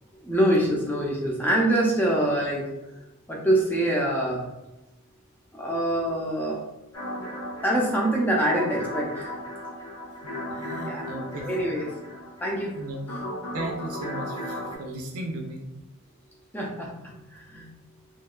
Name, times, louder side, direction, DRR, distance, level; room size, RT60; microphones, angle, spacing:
voice 1, 0.2-2.7 3.3-4.4 5.5-6.6 7.6-9.4 10.8-11.0 11.4-11.8 12.4-12.7 16.5-16.9 17.3-17.6, right 1 dB, 10° left, -3 dB, 0.3 m, -24 dB
sound 1, 6.9-14.8, left 1 dB, 85° left, 0.8 m, -36 dB
voice 2, 10.5-11.6 12.7-13.0 13.5-15.7, right 1 dB, 75° right, 2 dB, 0.4 m, -36 dB
2.8 x 2.2 x 2.3 m, 0.97 s
head